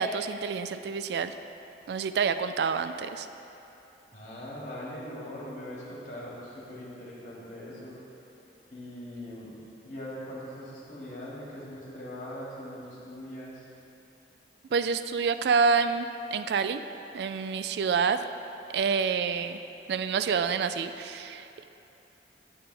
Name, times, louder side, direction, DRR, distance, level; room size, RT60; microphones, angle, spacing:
voice 1, 0.0-1.3 1.9-3.3 14.7-16.8 17.1-18.2 18.7-19.6 19.9-21.6, right 5 dB, 70° right, 10 dB, 0.3 m, -27 dB
voice 2, 4.1-8.0 8.7-9.6 9.8-13.7, left 1 dB, 45° left, -6 dB, 2.1 m, -41 dB
8.8 x 8.4 x 3.4 m, 2.9 s
head